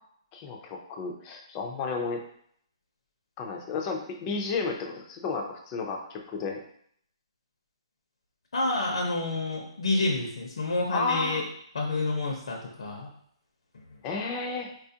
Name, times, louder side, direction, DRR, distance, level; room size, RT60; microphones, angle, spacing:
voice 1, 0.3-2.2 3.4-6.6 10.9-11.4 14.0-14.7, left 4 dB, 20° left, 1 dB, 0.4 m, -32 dB
voice 2, 8.5-11.4 11.7-13.1, left 2 dB, 80° left, -1 dB, 0.7 m, -28 dB
4.2 x 2.4 x 2.7 m, 0.67 s
hypercardioid pair, 170°, 3 cm